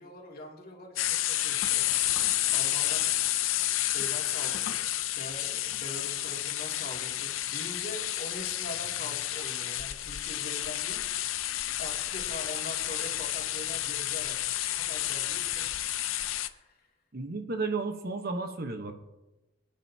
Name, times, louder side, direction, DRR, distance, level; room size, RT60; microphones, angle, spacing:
voice 1, 0.0-1.9 2.5-3.1 3.8-4.9 5.1-11.3 11.8-15.7 16.4-16.9, left 1 dB, 50° left, -1 dB, 2.4 m, -43 dB
sound 1, 1.0-16.5, left 14 dB, 75° left, 0.6 m, -30 dB
voice 2, 17.1-18.9, right 3 dB, 50° right, 6 dB, 1.0 m, -33 dB
26.0 x 9.3 x 2.8 m, 1.0 s
head